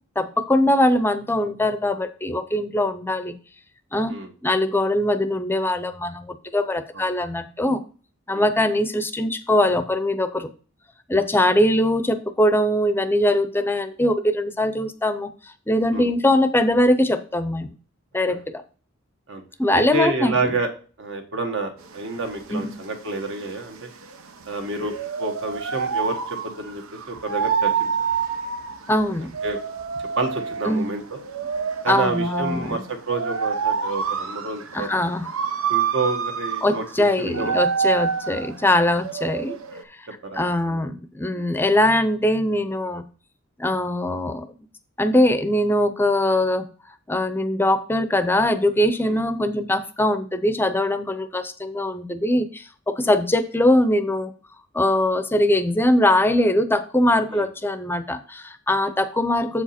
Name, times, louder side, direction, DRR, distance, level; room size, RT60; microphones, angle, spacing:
voice 1, 0.2-3.3 3.9-4.2 4.4-7.8 8.3-10.5 11.1-15.3 15.7-17.7 18.1-18.6 19.6-20.5 22.5-22.8 28.9-29.3 30.7-31.0 31.9-32.8 34.7-35.3 36.6-39.6 40.3-43.0 43.6-44.5 45.0-46.7 47.1-54.3 54.7-59.6, left 1 dB, 10° left, 10 dB, 0.6 m, -21 dB
voice 2, 19.7-20.7 21.0-23.9 24.5-27.9 29.4-29.6 30.2-31.2 31.8-34.9 35.7-37.5 40.2-40.8 41.3-41.5 49.0-49.2 53.0-53.1 57.3-57.4, right 2 dB, 65° right, 5 dB, 1.4 m, -29 dB
sound 1, 21.8-39.8, right 6 dB, 90° right, 0.8 m, -28 dB
7.6 x 4.9 x 4.2 m, 0.38 s
head